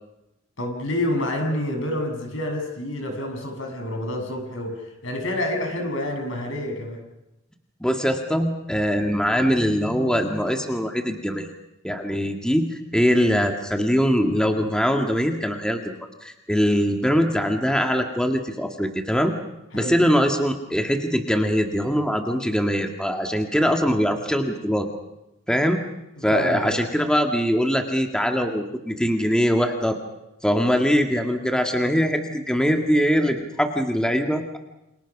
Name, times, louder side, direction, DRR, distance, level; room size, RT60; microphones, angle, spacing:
voice 1, 0.6-7.0 19.7-20.0 26.2-26.8, left 1 dB, 70° left, 4 dB, 7.5 m, -28 dB
voice 2, 7.8-11.5 11.8-19.3 19.7-24.9 25.5-25.8 26.2-30.0 30.4-34.6, equal, 5° left, 4 dB, 1.9 m, -22 dB
29.0 x 27.5 x 6.1 m, 0.93 s
head